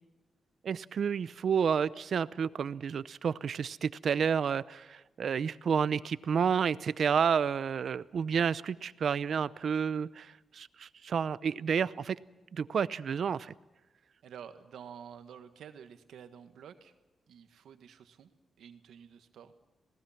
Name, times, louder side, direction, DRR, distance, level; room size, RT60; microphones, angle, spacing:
voice 1, 0.6-12.2 12.5-13.5, right 7 dB, 60° right, 17 dB, 0.6 m, -30 dB
voice 2, 14.2-16.9 17.3-18.3 18.6-19.5, right 8 dB, 90° right, 9 dB, 1.5 m, -50 dB
27.0 x 18.5 x 5.8 m, 1.1 s
cardioid pair, 115°, 0 cm